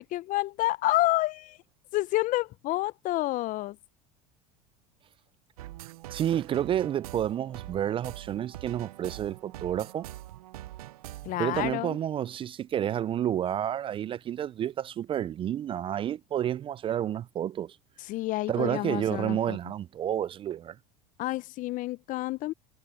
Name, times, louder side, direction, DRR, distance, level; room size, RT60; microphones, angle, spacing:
voice 1, 0.0-1.6 1.9-3.8 11.2-12.0 18.1-19.6 21.2-22.5, left 17 dB, 45° left, 0.6 m, -29 dB
sound 1, 5.6-11.7, right 15 dB, 80° right, 0.7 m, -43 dB
voice 2, 6.1-10.1 11.4-17.8 18.5-20.8, right 10 dB, 30° right, 0.3 m, -30 dB
hypercardioid pair, 95°, 19 cm